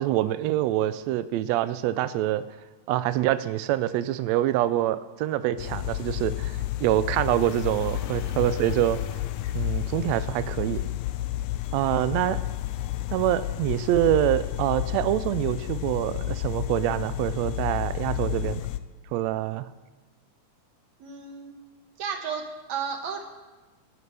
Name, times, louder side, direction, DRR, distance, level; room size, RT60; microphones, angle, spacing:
voice 1, 0.0-2.4 2.9-9.0 9.5-10.8 11.7-12.4 13.1-18.6 19.1-19.7, right 13 dB, 85° right, 13 dB, 1.5 m, -25 dB
sound 1, 5.6-18.8, left 14 dB, 80° left, 1.9 m, -31 dB
voice 2, 21.0-21.5 22.0-22.4 22.7-23.2, right 6 dB, 65° right, 3 dB, 2.6 m, -33 dB
23.5 x 9.5 x 3.4 m, 1.2 s
omnidirectional pair, 3.6 m